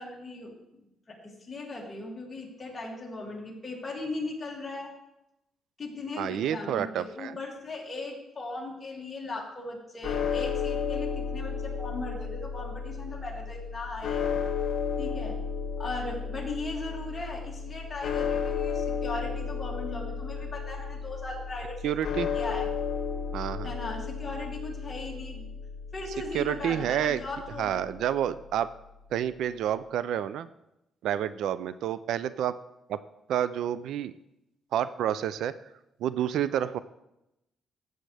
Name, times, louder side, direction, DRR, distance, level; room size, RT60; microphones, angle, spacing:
voice 1, 0.0-4.9 5.8-14.3 15.0-15.4 15.8-22.7 23.6-25.5 25.9-27.9, left 2 dB, 20° left, -3 dB, 2.6 m, -38 dB
voice 2, 6.2-7.3 21.8-22.3 23.3-23.7 26.3-27.2 27.6-28.7 29.1-30.5 31.0-32.5 32.9-33.0 33.3-34.1 34.7-35.5 36.0-36.8, right 10 dB, 75° right, 15 dB, 0.4 m, -29 dB
sound 1, 10.0-28.3, left 6 dB, 60° left, 1.4 m, -33 dB
14.5 x 7.7 x 3.4 m, 0.88 s
cardioid pair, 135°, 0 cm